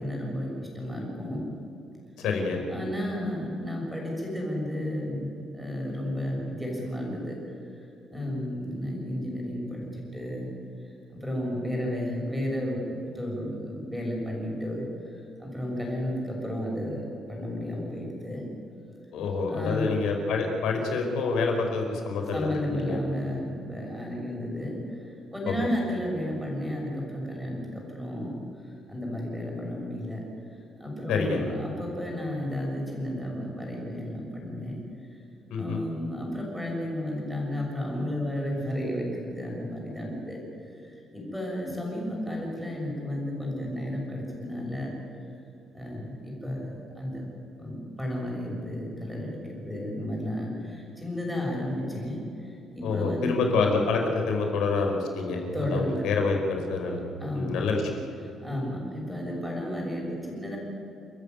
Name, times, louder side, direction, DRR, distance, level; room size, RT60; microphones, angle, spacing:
voice 1, 0.0-1.4 2.7-7.4 8.1-10.5 11.1-14.8 15.1-18.5 19.5-19.9 22.3-24.8 25.3-28.4 28.9-30.2 30.8-34.8 35.6-40.4 40.8-44.9 45.7-47.3 47.6-52.2 52.7-53.4 55.5-56.1 57.2-57.6 58.4-60.6, left 1 dB, 5° right, -2 dB, 6.5 m, -32 dB
voice 2, 2.2-2.6 19.1-23.0 25.5-25.6 31.1-31.4 35.5-35.8 52.8-57.0 57.3-57.8, left 4 dB, 80° left, 3 dB, 4.8 m, -27 dB
29.5 x 14.0 x 9.4 m, 2.8 s
cardioid pair, 160°, 0 cm